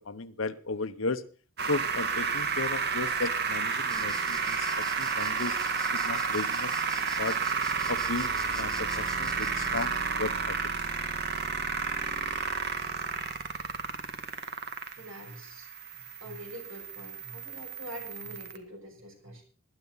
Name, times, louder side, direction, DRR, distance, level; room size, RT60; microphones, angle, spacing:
voice 1, 0.1-1.2 1.6-5.6 5.9-6.7 7.2-7.4 7.9-9.9 10.2-10.6, left 3 dB, 80° left, 13 dB, 1.0 m, -35 dB
sound 1, 1.6-18.6, right 5 dB, 55° right, 1.7 m, -31 dB
sound 2, 3.9-10.0, left 2 dB, 5° left, 1.7 m, -47 dB
voice 2, 14.9-15.7 15.9-19.4, equal, 85° right, 2 dB, 6.6 m, -45 dB
19.5 x 10.5 x 4.0 m, 0.39 s
head